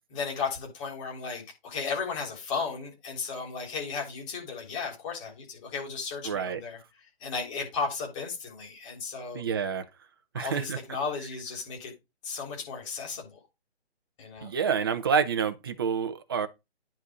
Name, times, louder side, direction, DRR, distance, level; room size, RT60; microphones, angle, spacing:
voice 1, 0.1-6.8 7.2-9.4 10.3-11.9 12.2-13.4 14.2-14.5, left 5 dB, 30° left, 3.5 m, -35 dB
voice 2, 6.2-6.6 9.3-9.9 10.3-10.8 14.4-16.5, right 6 dB, 20° right, 0.6 m, -28 dB
9.9 x 4.3 x 4.9 m
figure-of-eight pair, 145°, 33 cm